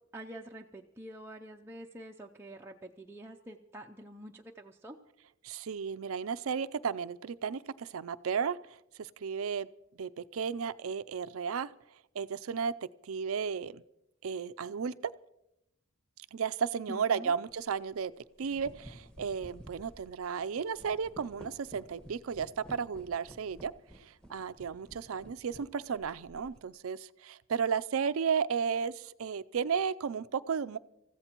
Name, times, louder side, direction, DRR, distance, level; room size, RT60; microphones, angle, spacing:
voice 1, 0.1-5.0 16.9-17.3, right 1 dB, 10° right, 0 dB, 0.5 m, -46 dB
voice 2, 5.4-9.7 9.9-11.7 12.1-13.8 14.2-15.1 16.3-18.1 18.4-30.8, right 6 dB, 75° right, 14 dB, 0.5 m, -34 dB
sound 1, 17.5-17.7 18.2-26.7, equal, 5° left, 1.4 m, -53 dB
28.0 x 15.0 x 3.0 m, 0.84 s
head